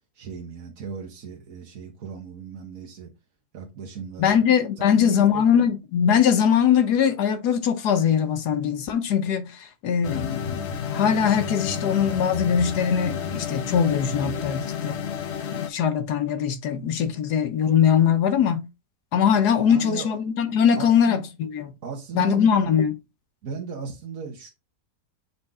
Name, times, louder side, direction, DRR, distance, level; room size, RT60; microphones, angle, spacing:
voice 1, 0.1-3.1 3.5-4.4 4.8-5.4 19.6-20.1 20.8-21.2 21.8-22.8 23.4-24.5, right 6 dB, 60° right, 1.5 m, -36 dB
voice 2, 4.2-15.0 15.5-18.7 19.1-21.7 22.1-22.9, left 8 dB, 85° left, 1.4 m, -21 dB
sound 1, 10.0-15.7, left 7 dB, 55° left, 0.9 m, -30 dB
6.9 x 4.0 x 3.5 m
omnidirectional pair, 1.7 m